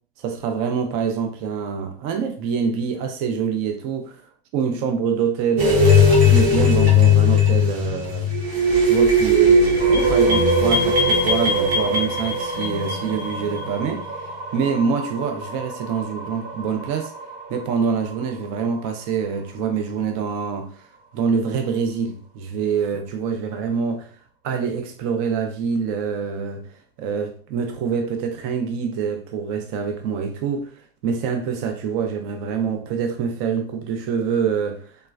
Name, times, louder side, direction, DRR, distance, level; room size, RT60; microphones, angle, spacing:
voice 1, 0.2-4.2 4.5-8.3 8.8-14.1 14.5-17.1 17.5-20.7 21.1-24.1 24.4-26.7 27.0-30.7 31.0-34.9, right 6 dB, 45° right, 0.6 m, -25 dB
sound 1, 5.6-13.6, left 2 dB, 85° right, 1.1 m, -17 dB
sound 2, 9.8-21.6, right 2 dB, 65° right, 1.2 m, -35 dB
3.2 x 2.1 x 2.3 m
hypercardioid pair, 110°, 31 cm